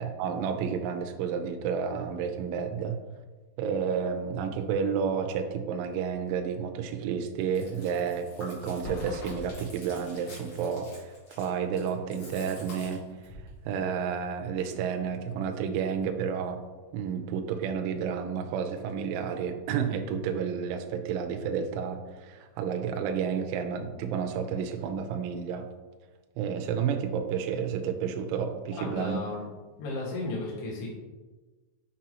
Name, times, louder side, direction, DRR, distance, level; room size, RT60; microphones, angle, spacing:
voice 1, 0.0-3.0 3.6-16.6 16.9-25.7 26.4-29.2, right 7 dB, 80° right, 5 dB, 3.0 m, -31 dB
Chewing mastication, 7.4-13.5, left 2 dB, 40° left, 2.8 m, -43 dB
voice 2, 28.7-29.4 29.8-30.9, left 2 dB, 80° left, -4 dB, 1.3 m, -34 dB
7.4 x 6.0 x 2.9 m, 1.3 s
omnidirectional pair, 5.6 m